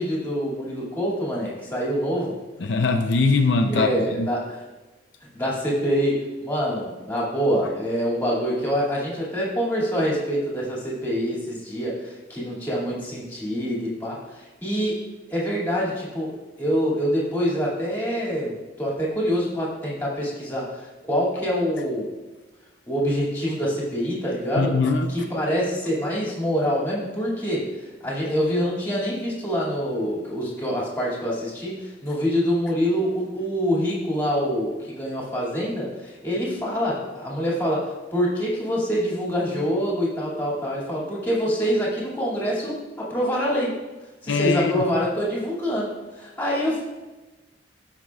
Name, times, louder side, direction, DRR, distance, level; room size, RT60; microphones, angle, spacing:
voice 1, 0.0-2.4 3.7-4.6 5.3-22.1 22.9-24.8 25.1-27.7 28.0-43.8 44.2-46.8, equal, 10° left, -5 dB, 2.3 m, -25 dB
voice 2, 2.6-3.9 4.2-4.3 24.6-25.1 44.3-44.8, left 3 dB, 75° left, 4 dB, 0.6 m, -21 dB
15.5 x 5.8 x 2.4 m, 1.2 s
head